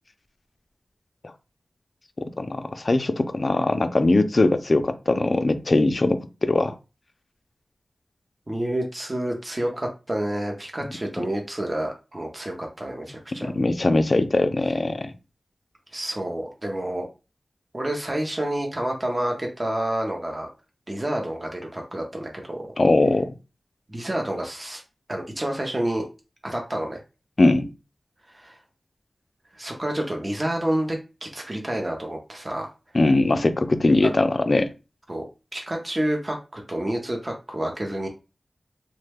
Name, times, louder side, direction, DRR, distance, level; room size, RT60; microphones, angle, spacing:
voice 1, 2.4-6.7 13.5-15.1 22.8-23.3 27.4-27.7 32.9-34.7, left 2 dB, 45° left, 10 dB, 0.4 m, -21 dB
voice 2, 8.5-13.5 15.9-17.1 17.7-20.5 20.9-22.7 23.9-24.8 25.1-26.0 26.4-27.0 28.3-28.6 29.5-32.7 35.1-35.2 35.5-38.1, right 1 dB, 30° right, 1 dB, 0.6 m, -29 dB
3.0 x 2.1 x 3.3 m, 0.30 s
wide cardioid pair, 80°, 0 cm